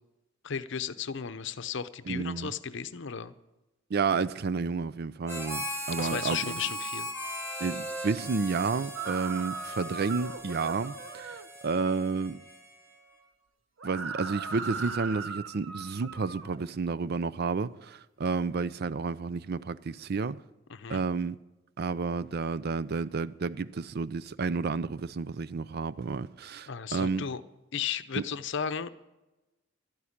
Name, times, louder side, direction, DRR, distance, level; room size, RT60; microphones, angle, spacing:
voice 1, 0.4-3.3 6.0-7.1 20.7-21.0 26.7-27.4 27.7-28.9, left 7 dB, 65° left, 0.7 m, -34 dB
voice 2, 2.1-2.5 3.9-6.6 7.6-11.3 11.6-12.4 13.8-20.4 20.9-21.4 21.8-27.3 28.2-28.3, right 4 dB, 55° right, 0.5 m, -31 dB
Harmonica, 5.3-13.0, equal, 15° right, 3.3 m, -39 dB
sound 1, 9.0-11.5 13.8-16.7, right 5 dB, 80° right, 0.9 m, -38 dB
12.5 x 9.4 x 8.6 m
head